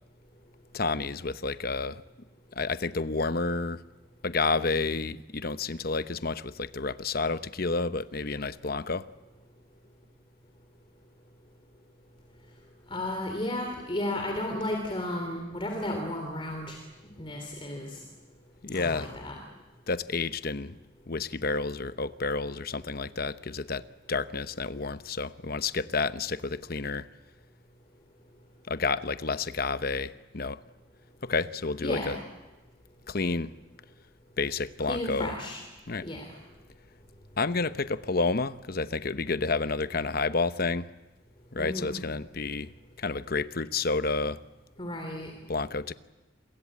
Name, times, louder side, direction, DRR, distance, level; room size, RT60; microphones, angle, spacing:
voice 1, 0.7-2.0 2.6-3.8 4.2-9.0 18.6-19.1 19.9-20.8 21.1-23.8 24.1-27.1 28.7-30.6 31.2-32.2 33.1-33.5 34.4-35.3 35.9-36.1 37.4-40.9 41.5-42.7 43.0-44.4 45.5-45.9, left 4 dB, 50° left, 13 dB, 0.9 m, -30 dB
voice 2, 12.9-16.8 17.2-18.0 18.7-19.4 31.8-32.2 34.8-35.6 36.0-36.2 41.6-42.0 44.8-45.3, left 1 dB, 25° left, 3 dB, 3.2 m, -33 dB
27.5 x 22.5 x 8.7 m, 1.1 s
head